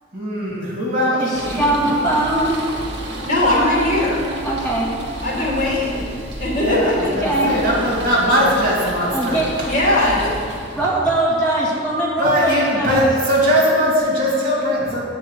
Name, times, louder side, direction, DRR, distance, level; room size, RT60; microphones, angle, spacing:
voice 1, 0.1-2.0 6.6-9.4 12.2-15.0, equal, 50° right, -5 dB, 2.2 m, -20 dB
voice 2, 1.1-2.6 4.4-4.9 5.3-5.4 7.0-7.6 9.1-9.7 10.7-13.1, right 1 dB, 5° left, -7 dB, 1.9 m, -21 dB
sound 1, 1.3-11.0, right 1 dB, 65° right, 1.2 m, -32 dB
voice 3, 3.2-4.2 5.2-7.1 9.7-10.3, left 1 dB, 45° left, -6 dB, 2.3 m, -19 dB
sound 2, 3.2-8.2, equal, 10° right, 1.8 m, -37 dB
8.5 x 4.3 x 6.7 m, 2.3 s
head